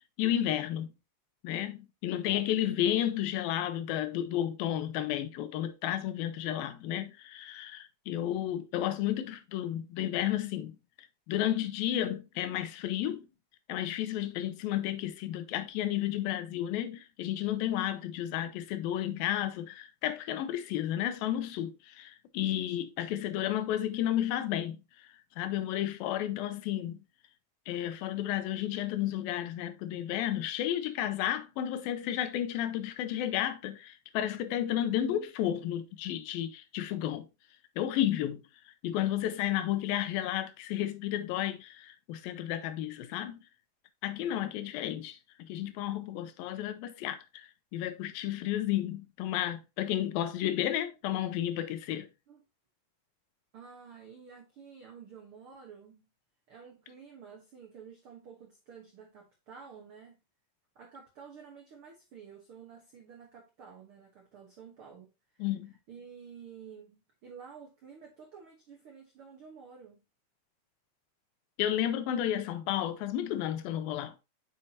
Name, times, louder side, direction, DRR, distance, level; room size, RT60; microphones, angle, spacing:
voice 1, 0.2-0.9 1.4-10.8 11.3-13.3 13.7-24.8 25.4-27.0 27.7-37.3 37.8-38.4 38.8-43.4 44.0-52.1 65.4-65.7 71.6-74.2, left 12 dB, 85° left, 2.4 m, -32 dB
voice 2, 53.5-56.1 56.5-60.2 60.7-65.1 65.3-65.5 65.9-70.0, right 6 dB, 70° right, 1.2 m, -51 dB
8.2 x 5.8 x 2.8 m
omnidirectional pair, 4.3 m